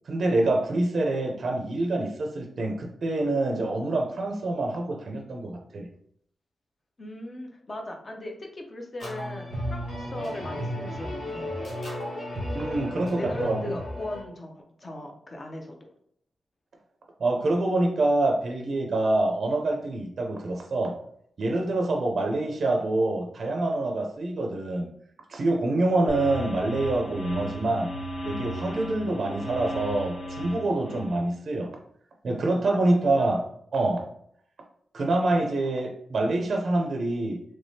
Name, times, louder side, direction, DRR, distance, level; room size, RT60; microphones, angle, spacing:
voice 1, 0.1-5.9 12.5-13.8 17.2-21.0 21.4-24.9 25.3-27.9 28.2-31.8 32.2-33.5 33.7-34.1 34.9-37.4, right 2 dB, 50° right, 2 dB, 0.4 m, -26 dB
voice 2, 7.0-11.5 12.8-15.7 17.6-17.9 22.2-22.3 32.7-33.3, left 1 dB, 30° left, 3 dB, 0.5 m, -38 dB
sound 1, 9.0-14.2, equal, 50° left, 1.4 m, -34 dB
sound 2, 26.1-31.2, equal, 75° left, 0.7 m, -35 dB
3.3 x 3.1 x 2.7 m, 0.68 s
wide cardioid pair, 170°, 0 cm